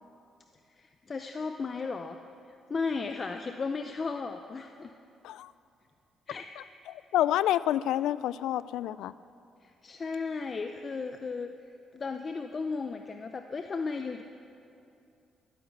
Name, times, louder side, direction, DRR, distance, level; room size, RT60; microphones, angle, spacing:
voice 1, 0.8-2.2 2.7-4.9 6.3-6.5 9.6-11.5 11.9-14.2, left 4 dB, 40° left, 7 dB, 0.6 m, -35 dB
voice 2, 6.9-9.1, left 12 dB, 85° left, 17 dB, 0.3 m, -28 dB
13.0 x 9.2 x 8.1 m, 2.6 s
cardioid pair, 90°, 0 cm